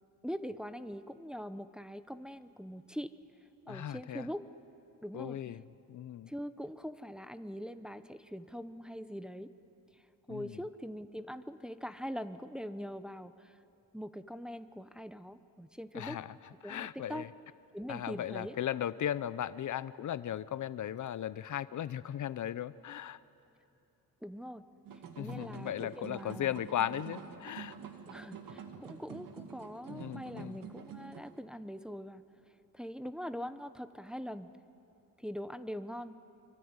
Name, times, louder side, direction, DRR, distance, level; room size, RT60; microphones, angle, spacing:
voice 1, 0.2-3.1 3.7-4.4 5.0-5.4 6.3-9.5 9.9-10.0 10.3-13.6 13.9-16.2 16.6-17.3 17.7-18.5 24.2-24.6 25.2-26.7 28.1-32.2 32.7-34.5 35.2-36.1, equal, ahead, 10 dB, 0.8 m, -42 dB
voice 2, 3.7-4.3 5.1-5.6 5.9-6.3 10.3-10.6 15.9-16.4 16.6-17.3 17.9-23.2 25.2-27.8 29.9-30.6, left 10 dB, 60° left, 16 dB, 0.7 m, -37 dB
sound 1, 24.9-31.4, right 7 dB, 80° right, 2.0 m, -48 dB
25.5 x 24.0 x 9.7 m, 2.8 s
cardioid pair, 100°, 33 cm